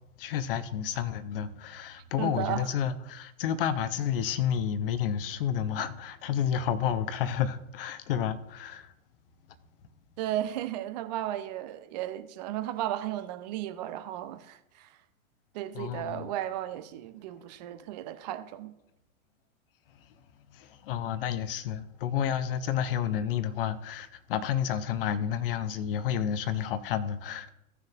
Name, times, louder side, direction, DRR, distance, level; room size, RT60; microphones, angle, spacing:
voice 1, 0.2-8.9 15.7-16.3 20.5-27.5, left 9 dB, 40° left, 0.8 m, -30 dB
voice 2, 1.9-2.7 10.2-15.0 15.5-18.7, right 12 dB, 30° right, 0.7 m, -35 dB
16.5 x 6.4 x 2.4 m
figure-of-eight pair, 105°, 43 cm